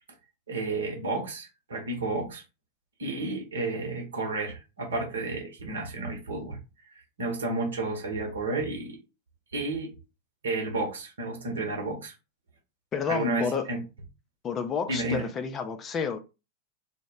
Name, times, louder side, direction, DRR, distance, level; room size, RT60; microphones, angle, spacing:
voice 1, 0.5-2.4 3.0-6.6 6.9-9.0 9.5-9.9 10.4-12.1 13.1-13.8 14.9-15.2, right 2 dB, 65° right, 0.9 m, -31 dB
voice 2, 12.9-13.7 14.4-16.2, left 6 dB, 25° left, 0.3 m, -30 dB
2.0 x 2.0 x 3.6 m
figure-of-eight pair, 90°, 0 cm